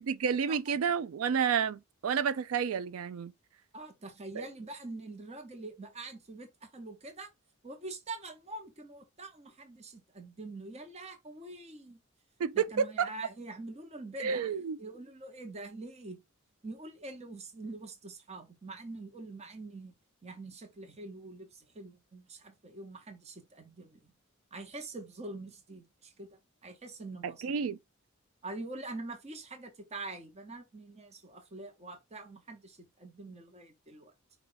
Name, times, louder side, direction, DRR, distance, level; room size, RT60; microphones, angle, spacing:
voice 1, 0.0-3.3 4.4-4.5 12.4-13.1 14.2-14.8 27.2-27.8, right 7 dB, 85° right, 0.4 m, -30 dB
voice 2, 3.7-7.3 7.6-12.0 12.5-14.5 14.8-16.2 16.6-19.9 20.2-24.1 24.5-27.6 28.4-34.1, right 2 dB, 30° right, 0.9 m, -45 dB
4.8 x 2.4 x 3.9 m
head